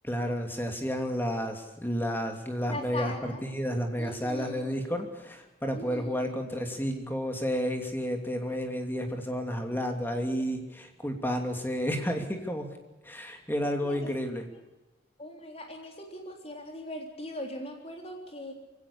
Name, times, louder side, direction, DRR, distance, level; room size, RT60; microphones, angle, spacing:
voice 1, 0.0-12.7 13.0-14.5, equal, 10° left, 4 dB, 2.8 m, -31 dB
voice 2, 2.7-3.4 4.0-4.7 5.7-6.3 13.8-14.1 15.2-18.5, left 1 dB, 30° left, 2 dB, 3.8 m, -40 dB
24.0 x 17.0 x 8.5 m, 1.0 s
head